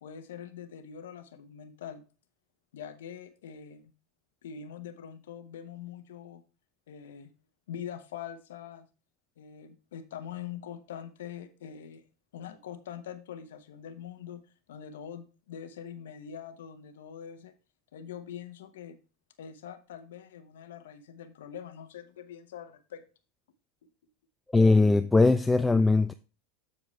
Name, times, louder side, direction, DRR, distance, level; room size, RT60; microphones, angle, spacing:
voice 1, 0.0-2.0 2.7-3.9 4.4-6.4 6.9-7.3 7.7-8.9 9.4-12.0 12.3-17.5 17.9-19.0 19.4-23.0, left 8 dB, 80° left, 0.9 m, -43 dB
voice 2, 24.5-26.1, left 3 dB, 10° left, 0.4 m, -21 dB
7.6 x 6.9 x 3.2 m
hypercardioid pair, 95°, 0 cm